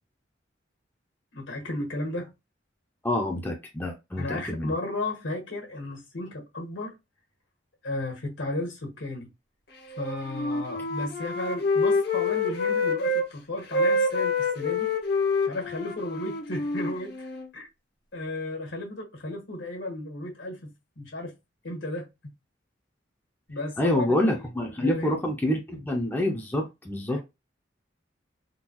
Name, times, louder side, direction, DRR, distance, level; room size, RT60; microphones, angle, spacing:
voice 1, 1.3-2.3 4.2-7.0 7.8-9.3 10.0-14.9 15.4-17.3 17.5-17.7 18.1-21.3 21.6-22.1 23.5-24.5 24.8-25.2 27.1-27.2, left 2 dB, 80° left, 1.4 m, -34 dB
voice 2, 3.0-4.7 23.8-27.2, left 1 dB, 10° left, 0.5 m, -27 dB
Wind instrument woodwind instrument, 9.9-13.3 13.6-17.5, left 3 dB, 55° left, 0.7 m, -27 dB
3.7 x 2.3 x 2.9 m
head